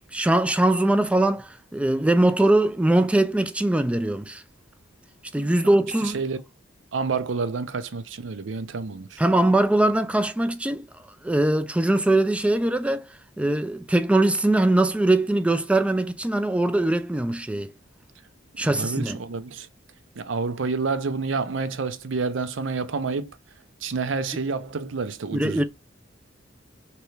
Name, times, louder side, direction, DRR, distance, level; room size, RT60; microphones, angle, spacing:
voice 1, 0.1-4.4 5.3-6.2 9.2-10.9 11.2-13.1 13.4-17.7 18.6-19.2 25.3-25.6, right 1 dB, 5° right, 0.3 m, -21 dB
voice 2, 5.4-5.7 6.0-6.4 6.9-9.2 18.6-19.7 20.2-23.3 23.8-25.6, right 4 dB, 70° right, 0.6 m, -29 dB
3.3 x 3.0 x 3.2 m
head